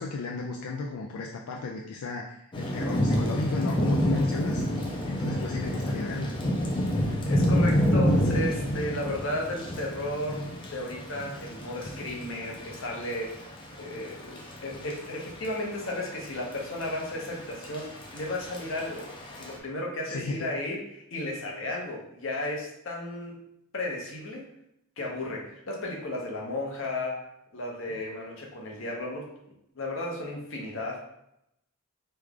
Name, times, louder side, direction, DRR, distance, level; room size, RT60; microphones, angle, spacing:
voice 1, 0.0-4.6 5.1-6.3 20.1-20.5, left 3 dB, 85° left, 0 dB, 0.3 m, -34 dB
Thunder / Rain, 2.5-19.6, equal, 20° left, 0.5 m, -29 dB
voice 2, 6.9-13.4 13.8-19.1 19.4-23.4 23.7-24.5 25.0-27.3 27.5-29.3 29.7-31.0, left 1 dB, 60° left, -1 dB, 0.8 m, -34 dB
3.1 x 2.3 x 3.5 m, 0.79 s
head